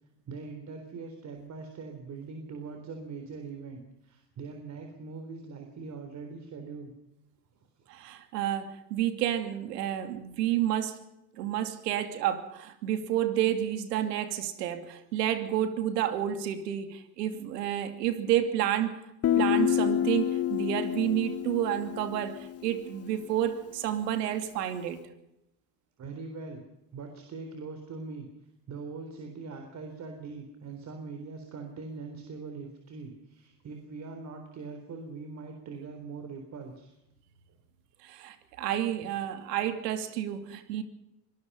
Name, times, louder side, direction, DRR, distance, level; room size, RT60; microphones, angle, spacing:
voice 1, 0.3-6.9 7.8-7.9 26.0-26.6 26.9-28.3 28.7-37.0, right 4 dB, 35° right, 5 dB, 3.9 m, -42 dB
voice 2, 7.9-11.0 11.4-19.0 19.4-25.0 38.0-40.8, right 11 dB, 85° right, 9 dB, 2.9 m, -30 dB
Guitar, 19.2-22.9, left 11 dB, 30° left, 1.0 m, -28 dB
24.5 x 19.0 x 5.6 m, 0.86 s
supercardioid pair, 115°, 47 cm